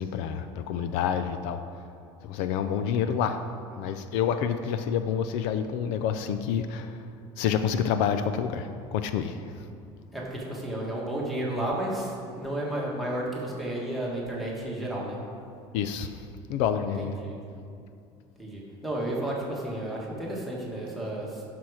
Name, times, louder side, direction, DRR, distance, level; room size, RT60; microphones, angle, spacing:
voice 1, 0.0-1.6 2.2-3.4 3.8-7.0 7.4-9.5 15.7-16.1 16.5-17.2, left 8 dB, 70° left, 9 dB, 0.5 m, -28 dB
voice 2, 10.1-15.2 17.0-17.4 18.4-21.4, right 1 dB, ahead, -4 dB, 1.5 m, -32 dB
11.5 x 6.0 x 4.8 m, 2.5 s
cardioid pair, 175°, 12 cm